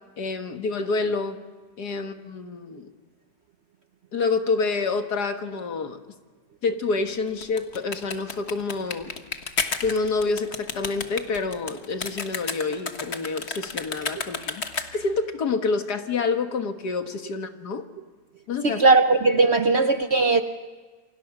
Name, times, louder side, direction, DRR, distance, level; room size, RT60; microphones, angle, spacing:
voice 1, 0.2-1.4 1.8-2.9 4.1-6.0 6.6-9.1 9.8-14.6 14.9-17.8 18.5-18.8, left 4 dB, 65° left, 2.0 m, -27 dB
sound 1, 7.3-15.2, left 4 dB, 40° left, 1.5 m, -32 dB
voice 2, 18.6-20.4, right 3 dB, 50° right, 0.9 m, -18 dB
28.5 x 24.0 x 6.0 m
omnidirectional pair, 1.9 m